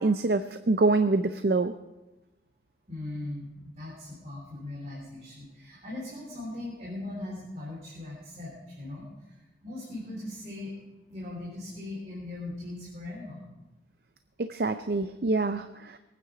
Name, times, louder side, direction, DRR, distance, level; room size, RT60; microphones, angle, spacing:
voice 1, 0.0-1.7 14.4-16.0, right 3 dB, 60° right, 10 dB, 0.5 m, -25 dB
voice 2, 2.9-9.3 9.6-10.7 11.1-13.4, left 2 dB, 40° right, -5 dB, 3.7 m, -39 dB
22.5 x 9.4 x 5.0 m, 1.1 s
head